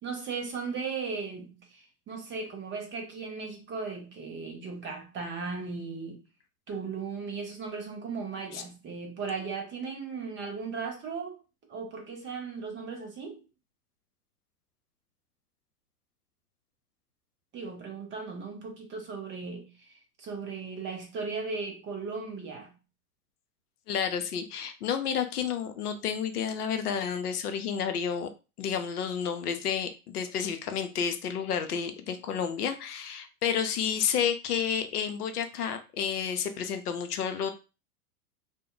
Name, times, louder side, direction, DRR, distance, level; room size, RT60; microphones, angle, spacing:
voice 1, 0.0-6.2 6.7-11.4 11.7-13.4 17.5-22.7, right 4 dB, 25° right, 0.8 m, -37 dB
voice 2, 23.9-28.3 28.6-37.5, left 7 dB, 75° left, 0.7 m, -30 dB
2.2 x 2.0 x 3.7 m
hypercardioid pair, 105°, 46 cm